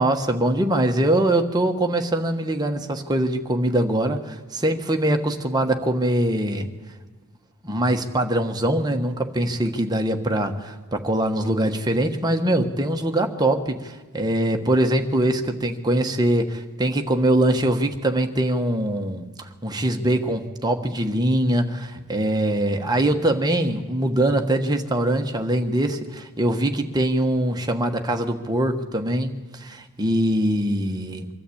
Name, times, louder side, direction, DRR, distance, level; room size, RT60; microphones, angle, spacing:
voice 1, 0.0-6.7 7.6-31.3, right 1 dB, 20° right, 4 dB, 1.3 m, -23 dB
24.0 x 12.5 x 8.6 m, 1.3 s
head